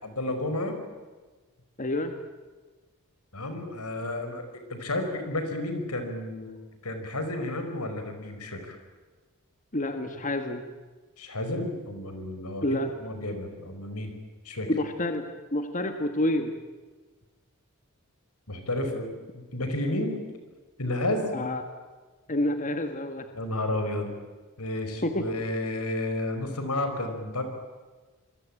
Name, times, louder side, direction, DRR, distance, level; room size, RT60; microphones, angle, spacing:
voice 1, 0.0-0.8 3.3-6.6 6.8-8.8 11.2-14.1 14.4-14.7 18.5-20.2 20.8-21.3 23.3-24.1 24.6-27.4, left 1 dB, 85° left, 7 dB, 5.4 m, -31 dB
voice 2, 1.8-2.1 9.7-10.7 12.6-12.9 14.7-15.2 15.5-16.5 21.3-21.6 22.3-23.3 25.0-25.3, left 1 dB, 35° left, 7 dB, 1.7 m, -28 dB
27.0 x 23.0 x 9.0 m, 1.3 s
head